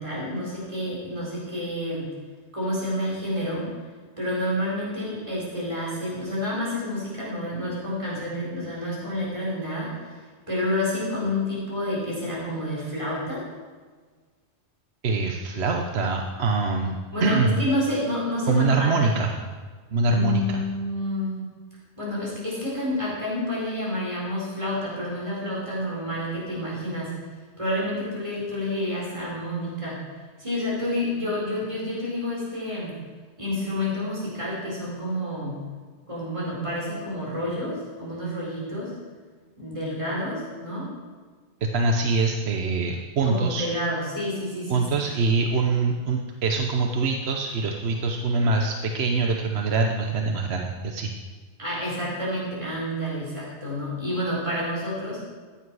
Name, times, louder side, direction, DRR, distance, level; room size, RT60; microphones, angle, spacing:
voice 1, 0.0-2.1 2.5-3.7 4.2-10.0 10.5-13.4 17.1-19.1 20.1-21.4 22.0-27.1 27.6-30.0 30.4-32.9 33.4-35.6 36.1-38.9 39.6-40.9 43.2-45.1 51.6-55.2, left 1 dB, 30° right, -6 dB, 4.3 m, -29 dB
voice 2, 15.0-17.6 18.5-19.3 19.9-20.6 41.7-43.7 44.7-51.1, right 3 dB, 70° right, 2 dB, 1.1 m, -24 dB
14.5 x 8.7 x 4.8 m, 1.5 s
omnidirectional pair, 1.2 m